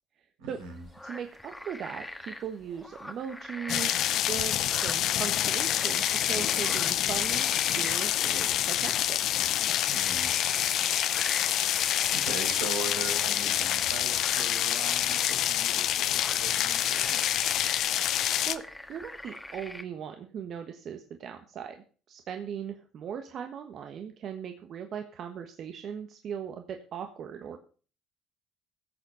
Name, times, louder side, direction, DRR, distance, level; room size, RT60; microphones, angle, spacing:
voice 1, 0.4-0.8 9.9-10.4 11.4-17.3, right 4 dB, 90° right, 1 dB, 4.6 m, -40 dB
sound 1, 0.6-19.8, left 1 dB, 10° left, 1.6 m, -41 dB
voice 2, 1.0-9.2 18.5-18.6 18.9-27.6, right 8 dB, 55° right, 6 dB, 1.3 m, -39 dB
sound 2, 3.7-18.6, left 12 dB, 65° left, 0.7 m, -27 dB
15.5 x 6.9 x 5.5 m, 0.40 s
supercardioid pair, 75°, 0 cm